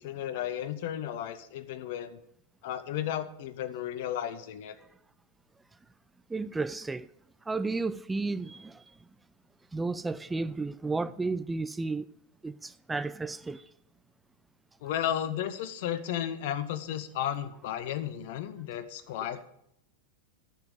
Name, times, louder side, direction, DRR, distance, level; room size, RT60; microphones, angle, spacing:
voice 1, 0.0-2.2 2.6-4.8 14.8-19.4, left 10 dB, 50° left, 0.9 m, -34 dB
voice 2, 6.3-7.1 7.5-8.8 9.7-12.1 12.4-13.7, right 3 dB, 10° right, 0.4 m, -33 dB
10.0 x 5.5 x 8.1 m
figure-of-eight pair, 90°, 0 cm